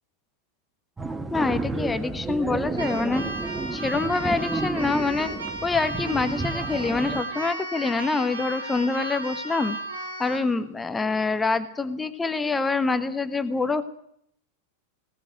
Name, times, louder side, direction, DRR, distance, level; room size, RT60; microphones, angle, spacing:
sound 1, 1.0-7.2, right 3 dB, 10° right, 1.3 m, -31 dB
voice 1, 1.3-3.2 3.7-5.3 5.6-9.8 10.2-13.8, left 3 dB, 10° left, 10 dB, 1.4 m, -26 dB
Keyboard (musical), 2.7-10.5, right 2 dB, 75° right, 4.6 m, -35 dB
20.5 x 17.5 x 9.2 m, 0.71 s
figure-of-eight pair, 90°, 0 cm